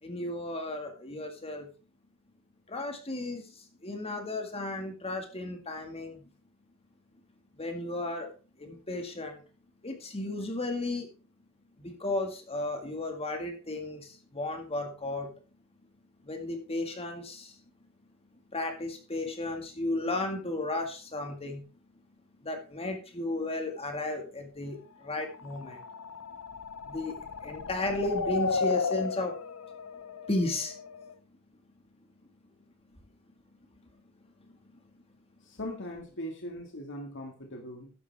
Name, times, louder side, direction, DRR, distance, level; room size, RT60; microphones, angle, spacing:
voice 1, 0.0-1.7 2.7-6.2 7.6-8.3 8.6-9.4 9.8-11.1 11.8-15.3 16.3-17.6 18.5-21.6 22.4-25.8 26.9-27.2 27.4-29.4 30.3-30.8, left 2 dB, 30° left, 4 dB, 2.0 m, -34 dB
sound 1, 25.3-31.1, left 4 dB, 90° left, 0.8 m, -34 dB
voice 2, 35.4-37.9, left 1 dB, 60° left, 3 dB, 2.0 m, -40 dB
12.5 x 10.0 x 3.5 m, 0.34 s
head